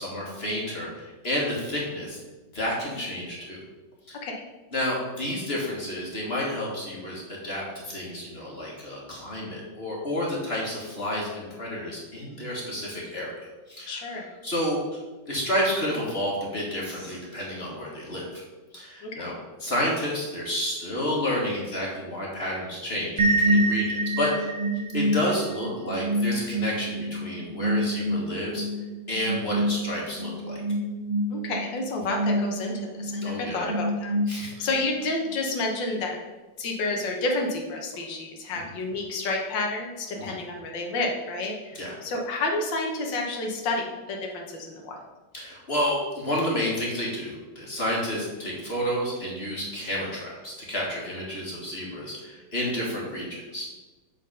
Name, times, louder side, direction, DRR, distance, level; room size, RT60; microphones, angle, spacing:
voice 1, 0.0-2.2 2.5-3.6 4.1-4.2 4.7-13.3 13.7-14.0 14.4-14.8 15.3-18.4 18.7-19.3 19.6-23.1 23.4-24.6 24.9-28.6 29.1-30.6 33.2-33.7 34.3-34.7 40.2-40.4 41.7-41.9 45.3-53.7, equal, 35° left, -4 dB, 1.7 m, -30 dB
voice 2, 13.9-14.3 19.0-19.3 31.3-36.2 36.6-45.0, left 2 dB, 85° left, 1 dB, 1.8 m, -30 dB
sound 1, 23.2-34.8, right 1 dB, 30° right, 0.9 m, -27 dB
7.9 x 4.2 x 5.4 m, 1.2 s
omnidirectional pair, 1.9 m